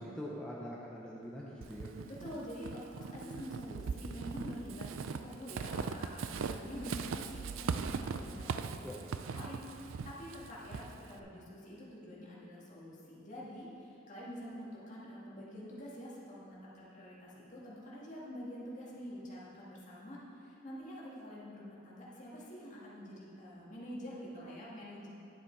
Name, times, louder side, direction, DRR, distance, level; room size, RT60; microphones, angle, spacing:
voice 1, 0.0-1.9 8.8-9.0, equal, 5° left, -6 dB, 0.7 m, -43 dB
Walk footsteps / Squeak, 1.6-11.2, right 5 dB, 80° right, 0.4 m, -40 dB
voice 2, 2.1-25.1, equal, 40° left, -6 dB, 2.0 m, -47 dB
10.5 x 7.3 x 4.7 m, 2.8 s
head